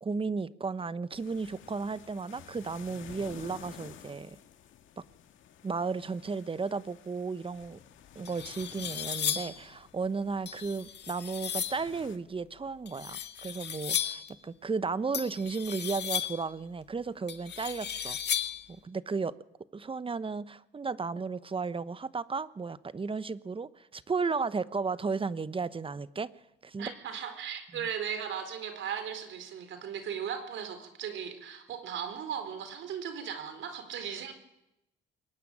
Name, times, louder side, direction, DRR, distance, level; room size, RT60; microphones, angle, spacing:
voice 1, 0.0-4.4 5.0-5.1 5.6-7.8 8.1-18.4 18.7-19.3 19.7-26.3 26.6-26.9 27.7-27.9, right 4 dB, 25° right, 1.0 m, -34 dB
sound 1, 1.1-12.2, left 9 dB, 75° left, 2.0 m, -52 dB
sound 2, 7.7-7.8 8.2-9.6 10.5-11.9 12.9-14.3 15.1-16.5 17.3-18.7, left 9 dB, 60° left, 1.9 m, -35 dB
voice 2, 26.8-34.3, right 8 dB, 75° right, 4.2 m, -37 dB
22.5 x 18.0 x 10.0 m
cardioid pair, 90°, 20 cm